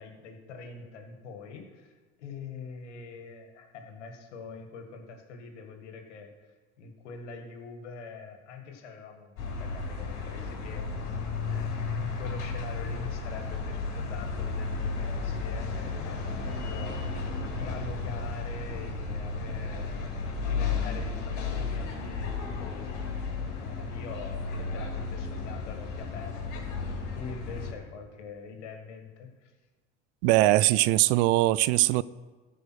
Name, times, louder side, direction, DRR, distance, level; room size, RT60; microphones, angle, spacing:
voice 1, 0.0-6.5 6.8-22.3 22.6-29.5, left 4 dB, 90° left, 1.7 m, -44 dB
sound 1, 9.4-27.7, left 4 dB, 60° left, 3.3 m, -33 dB
voice 2, 30.2-32.0, right 17 dB, 70° right, 0.5 m, -21 dB
13.5 x 5.1 x 6.2 m
supercardioid pair, 95°, 34 cm